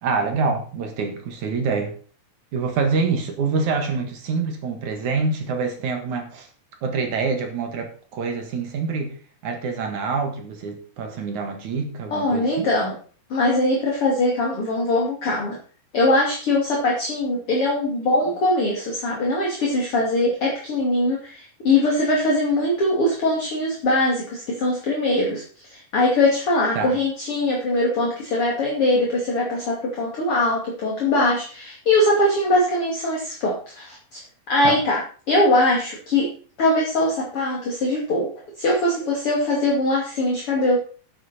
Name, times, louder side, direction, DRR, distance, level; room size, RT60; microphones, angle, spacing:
voice 1, 0.0-1.9 2.5-6.5 6.8-9.1 9.4-12.7 26.8-27.0 34.6-34.8, right 4 dB, 60° right, 5 dB, 2.9 m, -26 dB
voice 2, 12.1-13.0 13.3-15.6 15.9-34.2 34.5-35.0 35.3-36.3 36.6-38.3 38.6-40.8, left 1 dB, 40° left, -3 dB, 3.2 m, -21 dB
10.5 x 8.8 x 4.3 m, 0.41 s
omnidirectional pair, 4.0 m